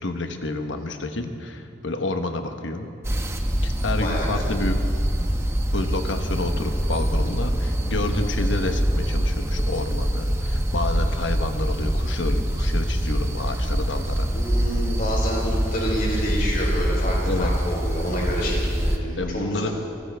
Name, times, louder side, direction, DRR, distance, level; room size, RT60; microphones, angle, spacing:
voice 1, 0.0-2.9 3.6-4.8 5.7-14.3 17.2-17.5 19.2-19.7, left 2 dB, 75° left, 6 dB, 1.1 m, -29 dB
sound 1, 3.0-19.0, equal, 15° right, 0.8 m, -24 dB
voice 2, 4.0-4.5 14.3-19.7, equal, 45° left, -3 dB, 3.9 m, -28 dB
24.0 x 15.5 x 3.5 m, 2.5 s
head